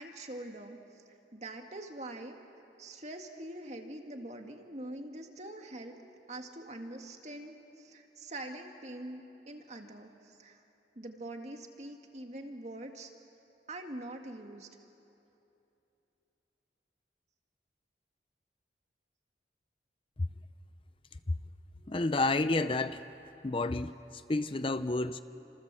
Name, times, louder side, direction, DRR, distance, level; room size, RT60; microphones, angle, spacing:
voice 1, 0.0-2.4 2.8-6.0 6.3-10.6 11.0-13.1 13.7-14.7, right 1 dB, 40° right, 2.1 m, -44 dB
voice 2, 21.9-23.0 23.4-25.2, left 2 dB, 30° left, 0.6 m, -30 dB
29.0 x 27.0 x 7.7 m
head